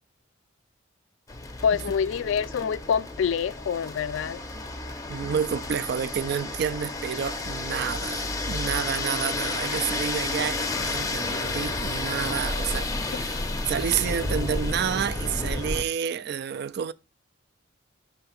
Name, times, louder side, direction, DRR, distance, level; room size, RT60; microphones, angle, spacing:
sound 1, 1.3-15.8, left 2 dB, 15° left, 0.6 m, -31 dB
voice 1, 1.6-4.4 13.1-13.2, left 7 dB, 70° left, 0.3 m, -26 dB
sound 2, 1.6-12.2, left 1 dB, 20° right, 0.7 m, -51 dB
voice 2, 5.1-13.4 13.7-16.9, right 8 dB, 55° right, 0.3 m, -29 dB
5.6 x 3.4 x 5.7 m
head